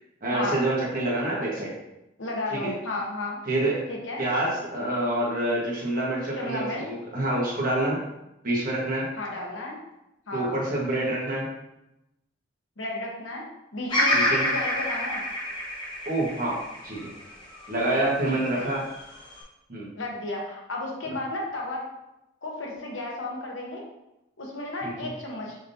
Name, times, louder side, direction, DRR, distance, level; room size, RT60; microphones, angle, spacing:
voice 1, 0.2-1.7 2.5-2.7 3.5-3.7 4.2-8.0 8.4-9.0 10.3-11.5 14.1-14.5 16.0-16.6 16.8-17.1 17.7-18.8 19.7-19.9 24.8-25.1, right 1 dB, 45° right, -4 dB, 1.4 m, -27 dB
voice 2, 2.2-3.4 3.9-4.2 6.4-6.8 9.2-9.8 10.3-10.5 12.8-13.4 13.7-15.2 18.3-18.7 20.0-21.9 22.4-23.8 24.4-25.6, left 2 dB, 85° left, -2 dB, 1.1 m, -33 dB
Bird vocalization bird call bird song, 13.9-18.1 18.7-19.4, left 1 dB, 25° left, 1.1 m, -27 dB
5.2 x 3.6 x 2.7 m, 0.91 s
head